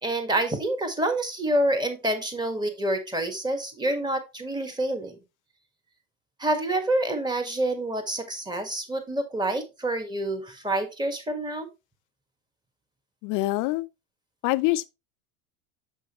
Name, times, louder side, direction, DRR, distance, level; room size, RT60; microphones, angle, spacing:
voice 1, 0.0-5.2 6.4-11.7, right 1 dB, 10° right, 1.5 m, -27 dB
voice 2, 13.2-13.9 14.4-14.9, left 19 dB, 45° left, 0.6 m, -25 dB
6.5 x 6.3 x 3.0 m
hypercardioid pair, 105°, 43 cm